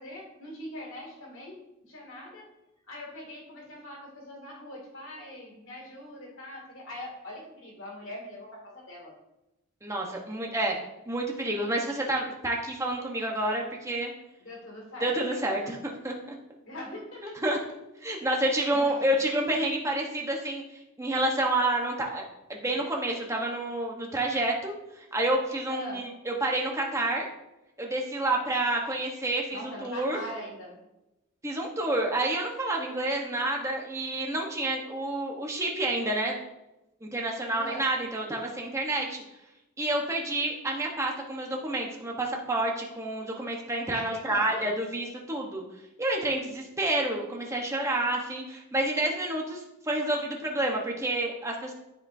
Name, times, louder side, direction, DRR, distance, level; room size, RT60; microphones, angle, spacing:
voice 1, 0.0-1.6 1.8-2.5 2.9-9.1 14.4-15.8 16.6-17.4 18.1-18.9 25.7-26.0 29.5-30.8 37.5-37.9 43.9-44.7, left 1 dB, 65° left, -2 dB, 2.5 m, -42 dB
voice 2, 9.8-10.8 11.1-14.1 15.0-16.1 17.2-17.6 18.0-20.6 21.0-22.2 22.5-27.3 27.8-30.2 31.4-36.4 37.0-39.2 39.8-45.6 46.0-51.7, right 1 dB, 15° right, 0 dB, 1.1 m, -29 dB
13.0 x 5.0 x 2.7 m, 0.95 s
head